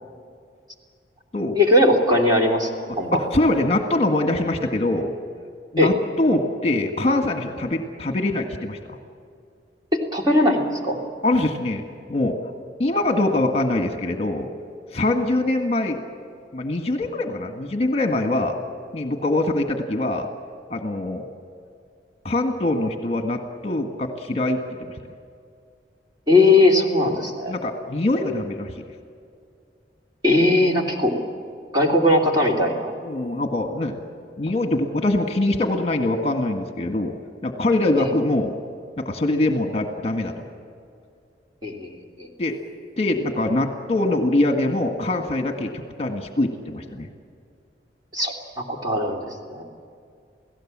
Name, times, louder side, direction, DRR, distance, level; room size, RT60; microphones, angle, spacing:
voice 1, 1.5-3.2 5.8-5.9 9.9-11.0 26.3-27.5 30.2-31.1 31.7-32.9 38.0-38.1 41.6-41.9 42.2-42.3 48.1-49.6, left 1 dB, 25° right, 0 dB, 3.1 m, -19 dB
voice 2, 3.1-5.1 5.7-8.8 11.2-12.4 12.8-14.5 14.9-16.0 16.5-18.6 18.9-20.3 20.7-21.2 22.2-24.6 27.5-28.8 31.0-31.1 31.9-32.0 33.0-34.0 34.4-37.1 37.4-38.5 39.0-40.4 42.4-42.5 43.0-47.1, left 2 dB, 35° left, 4 dB, 1.7 m, -23 dB
29.5 x 17.5 x 7.5 m, 2.3 s
head